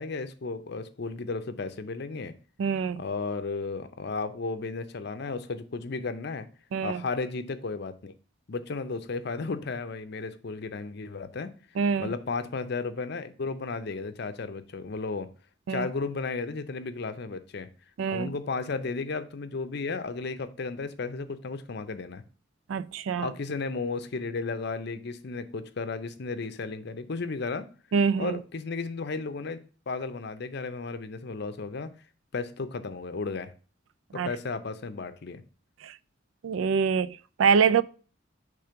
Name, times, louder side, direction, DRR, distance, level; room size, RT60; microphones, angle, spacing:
voice 1, 0.0-2.4 3.0-6.5 6.8-8.1 8.5-11.5 12.0-15.3 15.7-17.7 18.1-22.2 23.2-27.7 28.2-29.6 29.9-31.9 32.3-33.5 34.1-35.4, left 4 dB, 55° left, 0.6 m, -34 dB
voice 2, 2.6-3.0 6.7-7.0 11.8-12.1 15.7-15.9 18.0-18.3 22.7-23.3 27.9-28.4 34.1-34.3 35.8-36.0 36.4-37.8, right 6 dB, 75° right, 0.3 m, -25 dB
5.1 x 3.4 x 5.6 m
head